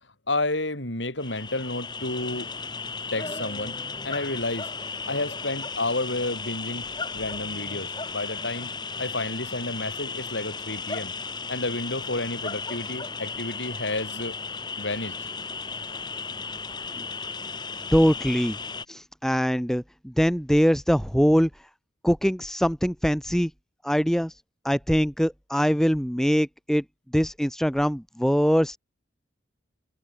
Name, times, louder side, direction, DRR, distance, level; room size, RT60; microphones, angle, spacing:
voice 1, 0.3-2.5 3.1-3.7 4.0-4.7 5.1-6.9 7.1-8.7 9.0-11.1 11.5-14.4 14.8-15.1, left 2 dB, 80° left, 7.0 m, -30 dB
sound 1, 1.2-18.9, left 4 dB, 25° left, 4.2 m, -35 dB
voice 2, 17.9-18.6 18.9-21.5 22.0-23.5 23.8-24.3 24.6-26.8 27.1-28.8, equal, ahead, 1.8 m, -23 dB
head